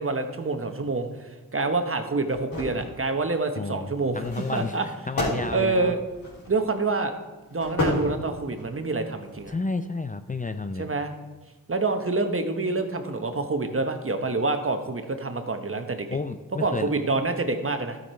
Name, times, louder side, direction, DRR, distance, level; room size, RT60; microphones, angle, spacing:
voice 1, 0.0-4.9 5.5-6.0 6.5-7.1 7.5-9.5 10.8-11.1 11.7-16.2 16.6-18.0, right 3 dB, 40° right, 7 dB, 1.1 m, -27 dB
sound 1, 2.3-2.9 4.2-6.6 7.5-8.7 9.3-9.5, left 1 dB, 85° left, 3.8 m, -30 dB
voice 2, 3.6-4.7 5.1-5.9 9.5-10.9 16.1-16.9, left 3 dB, 25° left, 9 dB, 0.5 m, -31 dB
12.5 x 6.6 x 4.5 m, 1.2 s
cardioid pair, 50°, 34 cm